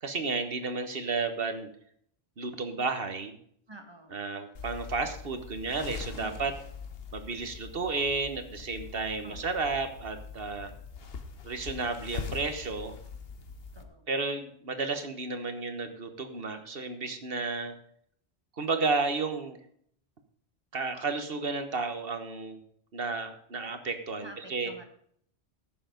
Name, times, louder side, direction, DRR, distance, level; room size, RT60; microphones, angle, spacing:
voice 1, 0.0-1.7 2.4-3.4 4.1-6.5 7.1-10.7 11.4-12.9 14.1-17.7 18.6-19.6 20.7-22.6 22.9-24.7, right 4 dB, 60° right, 8 dB, 1.5 m, -32 dB
voice 2, 3.7-4.2 6.2-6.5 9.2-9.6 13.7-14.1 24.2-24.9, right 1 dB, 25° right, 5 dB, 1.6 m, -48 dB
sound 1, 4.5-13.8, left 5 dB, 65° left, 1.3 m, -43 dB
14.5 x 7.1 x 5.1 m, 0.66 s
omnidirectional pair, 1.1 m